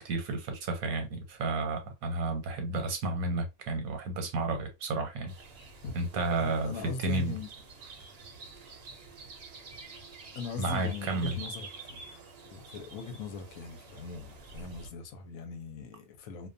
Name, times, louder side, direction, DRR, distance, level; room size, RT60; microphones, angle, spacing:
voice 1, 0.0-5.3 5.9-7.3 10.6-11.4, right 3 dB, 80° right, 1.2 m, -32 dB
sound 1, 5.3-14.9, right 3 dB, 55° right, 0.8 m, -48 dB
voice 2, 5.8-7.5 10.3-12.0 12.5-16.5, left 4 dB, 75° left, 1.0 m, -41 dB
2.4 x 2.2 x 2.5 m
omnidirectional pair, 1.5 m